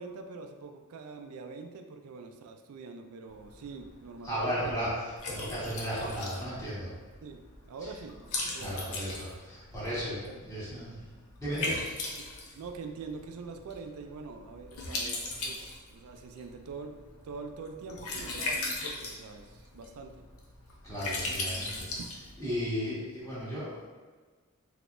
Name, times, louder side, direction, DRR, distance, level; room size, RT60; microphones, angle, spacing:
voice 1, 0.0-4.8 7.2-7.4 7.7-8.2 8.5-9.2 10.2-10.6 12.5-17.0 17.2-20.2 22.0-22.1, right 4 dB, 85° right, 5 dB, 0.4 m, -44 dB
Liquid, 3.3-22.7, left 2 dB, 80° left, 0.7 m, -39 dB
voice 2, 4.2-4.9 5.3-6.9 8.6-11.0 11.4-11.8 20.8-21.9 22.4-23.8, equal, 15° left, -9 dB, 1.3 m, -35 dB
3.9 x 2.8 x 2.5 m, 1.4 s
head